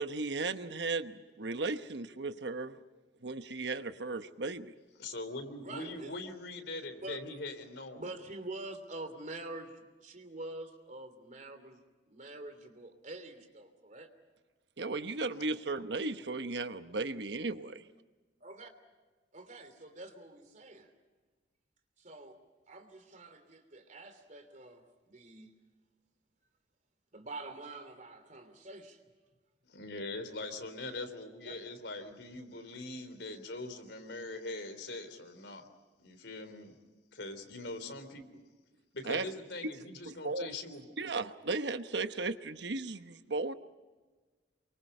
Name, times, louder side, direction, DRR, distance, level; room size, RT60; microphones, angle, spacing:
voice 1, 0.0-2.8 3.2-4.7 14.8-17.8 39.1-39.3 40.0-40.5 41.0-43.5, right 3 dB, 75° right, 10 dB, 1.1 m, -35 dB
voice 2, 5.0-8.1 29.7-35.6 36.0-36.7 37.2-38.4 38.9-40.9, left 2 dB, 80° left, 8 dB, 3.6 m, -42 dB
voice 3, 5.6-6.1 7.0-7.2 7.9-11.8 12.1-14.1 18.4-18.7 19.3-20.9 22.0-22.4 22.7-25.5 27.1-29.0 31.4-31.5, right 2 dB, 45° right, 8 dB, 3.1 m, -46 dB
28.5 x 24.0 x 5.6 m, 1.3 s
head